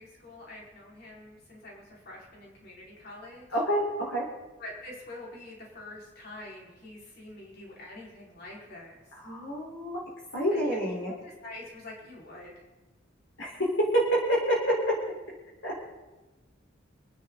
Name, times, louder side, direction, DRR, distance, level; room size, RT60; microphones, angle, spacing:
voice 1, 0.0-3.6 4.6-9.0 10.6-10.7 11.1-12.5, left 2 dB, 55° left, -4 dB, 4.9 m, -46 dB
voice 2, 3.5-4.3 9.2-10.0 10.3-11.1 13.4-15.0 15.6-15.8, equal, 70° left, -4 dB, 4.4 m, -27 dB
28.5 x 10.5 x 4.0 m, 1.2 s
head